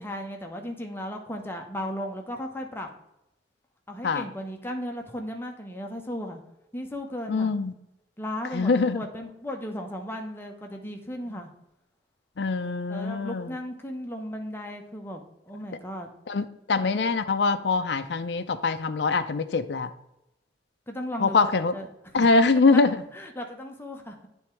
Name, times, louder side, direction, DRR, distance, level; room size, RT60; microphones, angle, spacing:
voice 1, 0.0-2.9 3.9-6.4 6.7-7.5 8.2-11.5 12.9-15.2 15.5-16.1 20.9-21.9 22.2-22.3 22.7-22.8 23.1-24.1, equal, 15° left, 3 dB, 0.9 m, -35 dB
voice 2, 7.3-7.7 8.5-9.0 12.4-13.5 16.3-19.9 21.2-21.7 22.1-23.0, left 4 dB, 70° left, 9 dB, 0.5 m, -23 dB
9.5 x 3.5 x 4.4 m, 0.85 s
head